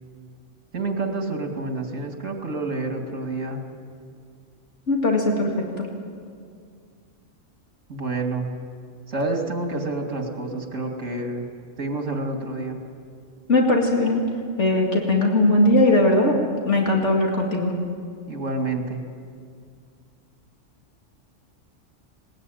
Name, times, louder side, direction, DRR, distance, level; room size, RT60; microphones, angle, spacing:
voice 1, 0.7-3.6 7.9-8.5 9.1-11.5 11.8-12.8 18.3-19.0, right 2 dB, 75° right, 3 dB, 2.9 m, -28 dB
voice 2, 4.9-5.9 13.5-14.2 14.6-16.4 16.7-17.7, left 2 dB, 65° left, 0 dB, 2.6 m, -19 dB
20.0 x 20.0 x 9.3 m, 2.2 s
omnidirectional pair, 1.3 m